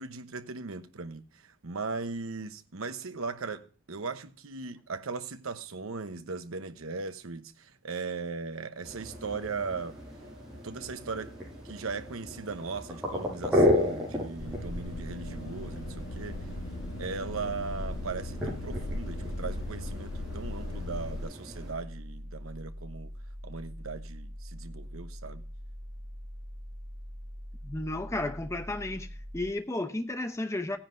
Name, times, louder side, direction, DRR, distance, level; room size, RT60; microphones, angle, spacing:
voice 1, 0.0-10.0 10.6-11.4 11.6-16.4 17.0-23.1 23.4-25.4, right 4 dB, 90° right, 0.9 m, -38 dB
sound 1, 8.8-21.7, left 1 dB, 5° right, 6.0 m, -34 dB
sound 2, 14.4-21.2, left 1 dB, 90° left, 0.9 m, -37 dB
sound 3, 21.5-29.5, equal, 25° right, 1.0 m, -43 dB
voice 2, 27.6-29.1 29.3-30.8, left 2 dB, 15° left, 0.7 m, -33 dB
16.5 x 9.9 x 2.6 m
head